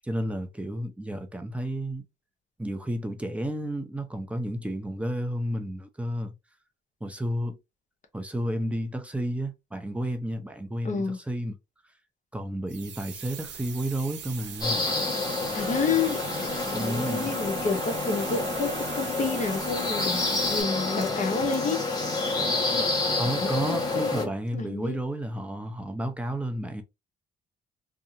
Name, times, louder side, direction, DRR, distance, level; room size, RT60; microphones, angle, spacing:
voice 1, 0.0-2.0 2.6-6.3 7.0-7.6 8.1-11.5 12.3-14.8 16.7-17.3 23.2-26.8, right 1 dB, 5° right, 0.6 m, -31 dB
voice 2, 10.8-11.2 15.5-22.1 22.7-22.9 23.4-25.0, left 4 dB, 40° left, 0.8 m, -30 dB
sound 1, 12.7-20.6, right 7 dB, 65° right, 0.8 m, -40 dB
sound 2, 14.6-24.3, left 2 dB, 20° left, 1.1 m, -28 dB
2.6 x 2.4 x 2.8 m
cardioid pair, 105°, 20 cm